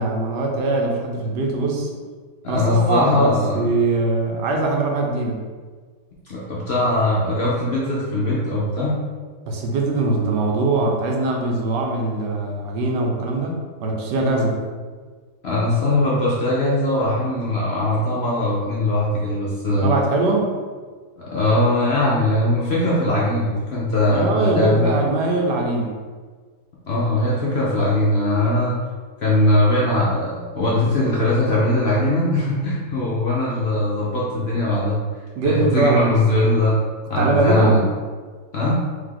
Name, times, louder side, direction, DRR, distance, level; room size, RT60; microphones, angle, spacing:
voice 1, 0.0-1.9 2.5-5.4 9.5-14.6 19.8-20.6 24.1-25.9 35.4-36.1 37.2-37.8, right 2 dB, 85° right, 0 dB, 1.4 m, -22 dB
voice 2, 2.4-3.6 6.3-9.0 15.4-19.9 21.2-24.9 26.9-28.8 29.2-35.0 35.4-36.8 37.1-37.8 38.5-38.8, left 1 dB, 55° left, -6 dB, 0.7 m, -20 dB
3.5 x 3.3 x 3.8 m, 1.5 s
omnidirectional pair, 1.8 m